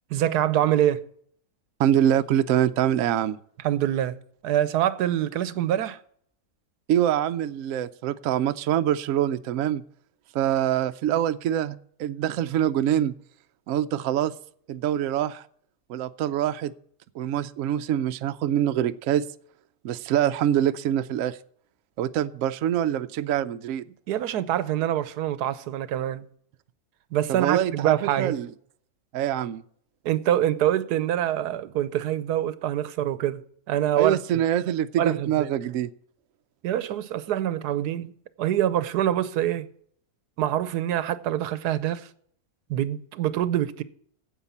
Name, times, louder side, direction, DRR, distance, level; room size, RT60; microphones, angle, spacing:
voice 1, 0.1-1.0 3.6-4.2 4.4-6.0 24.1-26.3 27.1-28.4 30.0-33.4 33.7-34.2 35.0-35.5 36.6-38.1 38.4-39.7 40.4-42.1 42.7-43.8, right 11 dB, 90° right, 1.3 m, -25 dB
voice 2, 1.8-3.4 6.9-9.8 10.3-13.1 13.7-14.3 14.7-15.4 15.9-16.7 17.1-19.3 19.8-21.4 22.0-23.8 27.3-28.5 29.1-29.6 33.9-35.9, right 11 dB, 65° right, 0.9 m, -24 dB
9.6 x 8.1 x 7.1 m
omnidirectional pair, 1.6 m